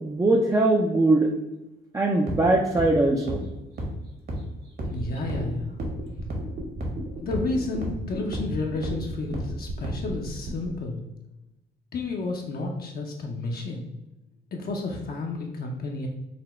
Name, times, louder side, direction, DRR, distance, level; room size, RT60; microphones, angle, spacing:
voice 1, 0.0-1.3 1.9-3.4, right 2 dB, 15° right, -1 dB, 0.4 m, -21 dB
sound 1, 2.3-2.4 2.8-2.9 3.3-3.4 3.8-3.9 4.3-4.4 4.8-4.9 5.3-5.4 5.8-5.9 6.3-6.4 6.8-6.9 7.3-7.4 7.8-7.9 8.3-8.4 8.8-8.9 9.3-9.4 9.8-9.9, right 1 dB, 55° right, 1.3 m, -30 dB
voice 2, 4.8-5.8 7.2-11.0 11.9-13.9 14.5-16.1, left 3 dB, 50° left, 0 dB, 0.6 m, -31 dB
sound 2, 4.8-10.7, right 2 dB, 75° right, 1.4 m, -36 dB
4.1 x 2.2 x 4.2 m, 0.97 s
cardioid pair, 90°, 20 cm